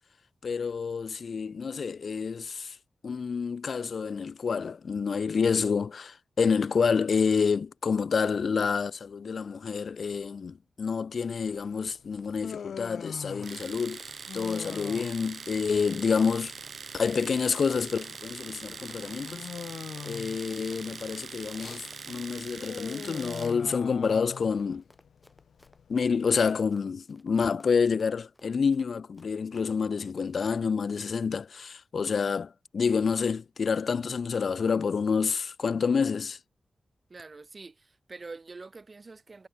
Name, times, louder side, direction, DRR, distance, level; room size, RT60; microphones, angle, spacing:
voice 1, 0.4-2.8 3.0-16.5 16.9-19.5 20.0-24.8 25.9-36.4, left 5 dB, 60° left, 0.3 m, -28 dB
Human voice, 11.5-26.7, left 7 dB, 85° left, 2.5 m, -43 dB
Run, 11.6-29.7 30.0-30.1, left 1 dB, 15° left, 7.5 m, -61 dB
Domestic sounds home sounds, 13.4-23.6, right 5 dB, 55° right, 1.9 m, -42 dB
voice 2, 37.1-39.5, right 3 dB, 35° right, 2.3 m, -45 dB
wide cardioid pair, 140°, 0 cm